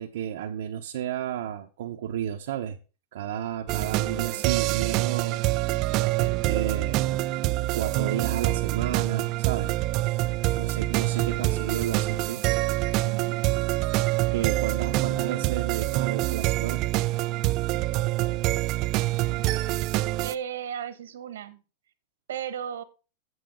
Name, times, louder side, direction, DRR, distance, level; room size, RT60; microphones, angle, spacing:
voice 1, 0.0-2.8 3.1-5.4 5.9-7.4 7.7-9.7 10.0-10.3 10.6-12.4 14.3-16.8, right 10 dB, 75° right, 0.8 m, -32 dB
sound 1, 3.7-20.3, right 18 dB, 40° right, 0.4 m, -26 dB
voice 2, 13.0-13.4 20.2-21.6 22.3-22.8, right 9 dB, 90° right, 1.3 m, -35 dB
7.9 x 7.9 x 3.8 m
supercardioid pair, 140°, 0 cm